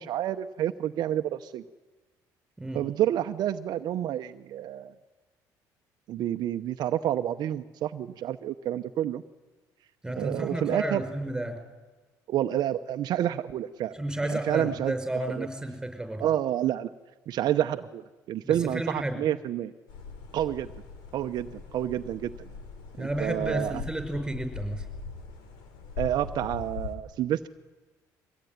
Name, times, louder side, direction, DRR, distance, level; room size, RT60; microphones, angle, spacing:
voice 1, 0.0-1.6 2.7-4.9 6.1-9.2 10.2-11.0 12.3-13.9 14.2-14.9 15.4-15.5 16.2-16.9 17.3-18.0 18.3-19.7 20.3-20.7 21.1-21.5 21.7-22.3 23.0-23.8 26.0-27.5, right 11 dB, 65° right, 7 dB, 0.8 m, -29 dB
voice 2, 10.0-11.6 13.9-16.3 18.4-19.2 23.0-24.9, right 1 dB, 10° right, 6 dB, 5.6 m, -32 dB
sound 1, 19.9-27.0, left 5 dB, 85° left, 3.2 m, -41 dB
23.0 x 18.0 x 9.5 m, 1.2 s
cardioid pair, 95°, 8 cm